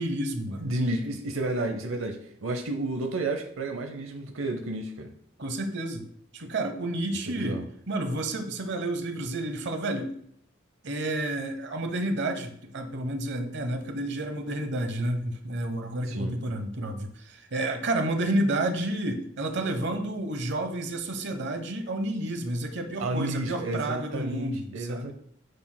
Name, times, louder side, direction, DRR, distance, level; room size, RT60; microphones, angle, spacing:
voice 1, 0.0-0.7 5.4-6.1 6.3-10.1 10.8-25.1, right 1 dB, 60° right, 7 dB, 0.9 m, -30 dB
voice 2, 0.6-5.1 7.3-7.7 16.1-16.3 23.0-25.1, right 2 dB, 90° right, 6 dB, 0.7 m, -31 dB
9.6 x 6.0 x 2.2 m, 0.66 s
head